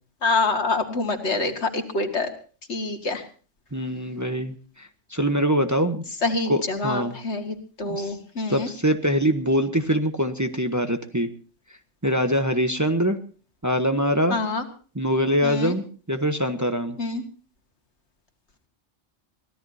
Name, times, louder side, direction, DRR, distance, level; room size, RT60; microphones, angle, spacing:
voice 1, 0.2-2.3 2.7-3.2 6.2-8.7 14.3-14.7 15.4-15.8 17.0-17.2, left 3 dB, 65° left, 5 dB, 2.4 m, -26 dB
voice 2, 3.7-6.0 6.5-7.2 7.8-8.2 8.5-11.3 12.0-13.2 13.6-14.4 14.9-17.0, equal, 15° right, 7 dB, 1.0 m, -24 dB
24.0 x 17.0 x 2.8 m, 0.40 s
omnidirectional pair, 1.3 m